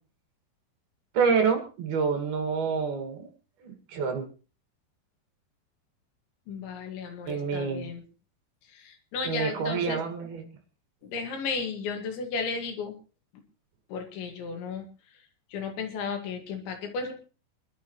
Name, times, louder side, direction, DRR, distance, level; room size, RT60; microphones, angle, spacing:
voice 1, 1.1-3.3 3.6-4.3 7.3-7.9 9.2-10.4, right 5 dB, 60° right, 5 dB, 3.8 m, -27 dB
voice 2, 6.5-8.0 8.7-10.1 11.0-12.9 13.9-14.9 15.5-17.1, left 5 dB, 80° left, 4 dB, 4.3 m, -34 dB
26.0 x 12.0 x 3.1 m, 0.35 s
omnidirectional pair, 5.1 m